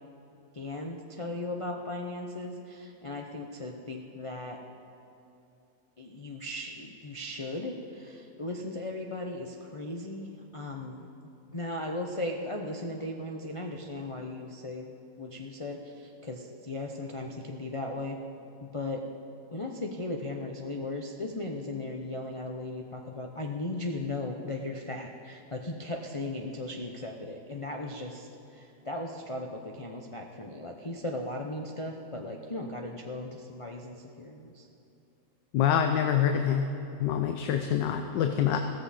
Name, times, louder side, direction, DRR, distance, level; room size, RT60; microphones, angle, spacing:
voice 1, 0.5-4.6 6.0-11.1 11.5-14.9 15.2-18.2 18.6-19.0 19.5-34.7, left 2 dB, 40° left, 0 dB, 0.4 m, -37 dB
voice 2, 35.5-36.7 37.0-38.6, left 9 dB, 80° left, 6 dB, 1.4 m, -26 dB
16.0 x 14.0 x 4.3 m, 2.8 s
omnidirectional pair, 1.9 m